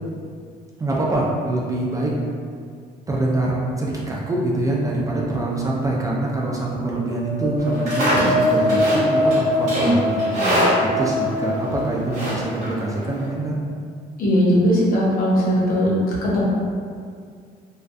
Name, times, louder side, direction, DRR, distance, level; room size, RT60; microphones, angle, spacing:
voice 1, 0.8-2.1 3.1-10.5 11.0-13.6, right 2 dB, 20° right, -4 dB, 0.3 m, -24 dB
sound 1, 7.0-12.8, left 1 dB, 10° left, 0.8 m, -23 dB
Livestock farm animals working animals, 7.6-13.3, equal, 45° right, 1.1 m, -26 dB
voice 2, 14.2-15.9 16.2-16.4, equal, 60° left, -6 dB, 0.8 m, -19 dB
2.3 x 2.2 x 2.5 m, 2.1 s
cardioid pair, 110°, 17 cm